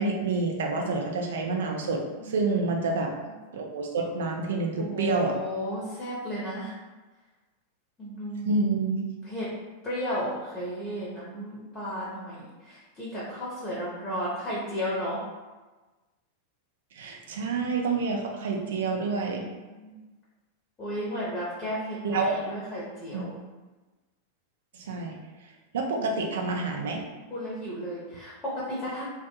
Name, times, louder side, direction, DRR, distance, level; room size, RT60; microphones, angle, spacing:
voice 1, 0.0-3.1 3.5-5.4 8.5-9.1 16.9-19.4 22.0-22.4 23.1-23.4 24.8-25.2 25.7-27.0, right 3 dB, 60° right, 1 dB, 0.4 m, -28 dB
voice 2, 2.2-2.5 4.8-6.7 8.0-8.7 9.2-9.5 9.8-15.2 18.0-19.2 19.6-20.0 20.8-23.3 26.0-26.1 27.3-29.0, equal, 20° left, -7 dB, 0.8 m, -34 dB
2.3 x 2.1 x 2.9 m, 1.2 s
figure-of-eight pair, 90°, 0 cm